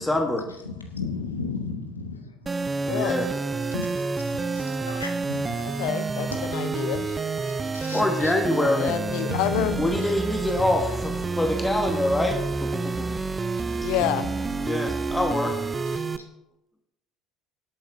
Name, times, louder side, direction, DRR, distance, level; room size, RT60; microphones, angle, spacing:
voice 1, 0.0-0.5 2.9-3.3 7.9-9.0 9.8-13.2 13.8-13.9 14.6-15.5 15.9-16.0, left 1 dB, 10° left, 4 dB, 1.2 m, -25 dB
voice 2, 0.6-2.6 3.1-3.3 3.7-5.6 6.3-6.8 7.4-8.3 9.3-10.0 13.7-13.8 15.9-16.3, left 4 dB, 85° left, 4 dB, 1.2 m, -35 dB
sound 1, 2.5-16.2, right 4 dB, 20° right, 0.6 m, -29 dB
voice 3, 2.9-3.2 5.8-7.1 8.8-9.8 13.8-14.3, left 12 dB, 60° left, 12 dB, 0.7 m, -28 dB
18.5 x 8.5 x 2.7 m, 0.90 s
figure-of-eight pair, 65°, 0 cm